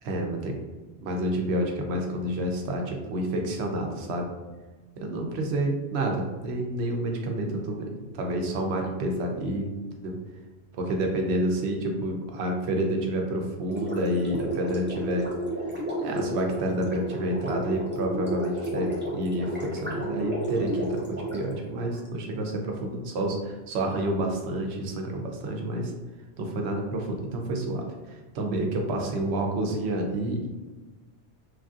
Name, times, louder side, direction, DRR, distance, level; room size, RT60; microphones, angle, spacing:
voice 1, 0.0-0.6 1.0-4.3 5.0-9.7 10.0-10.2 10.7-15.3 15.7-25.9 26.4-30.5, right 1 dB, 70° right, 2 dB, 0.8 m, -29 dB
Gurgling, 13.7-22.1, equal, 15° right, 0.4 m, -32 dB
3.1 x 2.5 x 2.4 m, 1.2 s
omnidirectional pair, 1.2 m